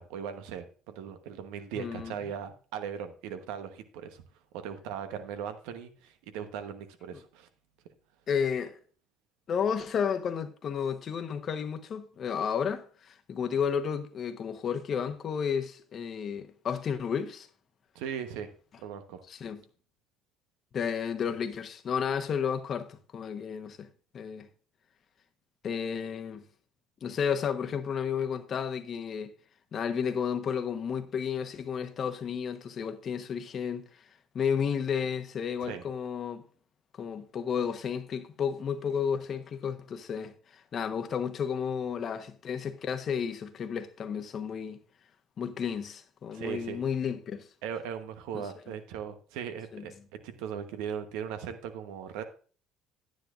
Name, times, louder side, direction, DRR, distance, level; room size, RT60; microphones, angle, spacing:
voice 1, 0.0-4.2 4.5-7.5 17.9-18.5 18.8-19.2 35.6-35.8 46.3-46.8 47.6-49.9 50.2-52.2, right 8 dB, 80° right, 1.0 m, -38 dB
voice 2, 1.7-2.1 8.3-8.8 9.5-17.5 19.3-19.6 20.7-23.9 24.1-24.5 25.6-26.4 27.0-29.3 29.7-34.0 34.3-36.4 37.0-44.8 45.4-47.5 48.3-48.5 49.7-49.9, left 7 dB, 50° left, 1.1 m, -32 dB
10.5 x 9.5 x 2.5 m
hypercardioid pair, 70°, 0 cm